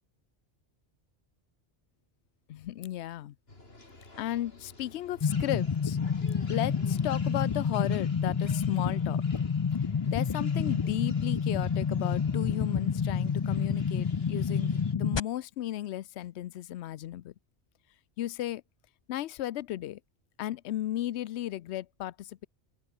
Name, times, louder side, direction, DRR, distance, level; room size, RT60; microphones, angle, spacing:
voice 1, 2.5-3.3 4.2-6.0 6.5-9.2 10.1-17.3 18.2-18.6 19.1-20.0 20.4-22.5, left 13 dB, 75° left, 0.9 m, -34 dB
sound 1, 3.5-14.9, left 2 dB, 60° left, 4.5 m, -51 dB
sound 2, 5.2-15.2, left 6 dB, 45° left, 0.3 m, -29 dB
open air
omnidirectional pair, 1.2 m